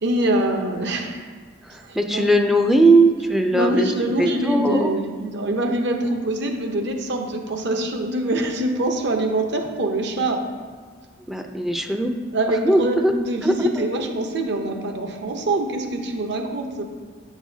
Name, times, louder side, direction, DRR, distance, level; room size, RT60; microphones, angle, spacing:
voice 1, 0.0-1.3 1.8-2.3 3.5-10.4 12.3-16.8, right 1 dB, 65° right, 4 dB, 0.8 m, -24 dB
voice 2, 1.7-3.9 4.2-4.9 11.3-12.1 12.5-13.1 13.4-13.9, right 2 dB, ahead, 4 dB, 0.4 m, -19 dB
8.6 x 6.2 x 2.7 m, 1.5 s
head